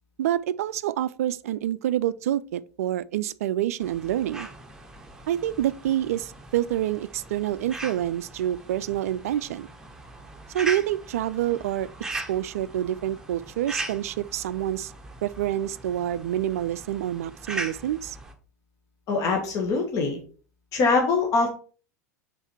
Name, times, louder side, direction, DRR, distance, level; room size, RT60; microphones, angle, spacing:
voice 1, 0.2-4.5 5.3-9.7 10.5-11.9 12.3-14.9 15.2-18.2, right 12 dB, 65° right, 0.3 m, -27 dB
sound 1, 3.8-18.3, right 2 dB, 5° right, 1.1 m, -40 dB
voice 2, 19.1-20.2 20.7-21.5, left 4 dB, 40° left, 1.4 m, -23 dB
5.6 x 4.1 x 4.3 m
figure-of-eight pair, 80°, 9 cm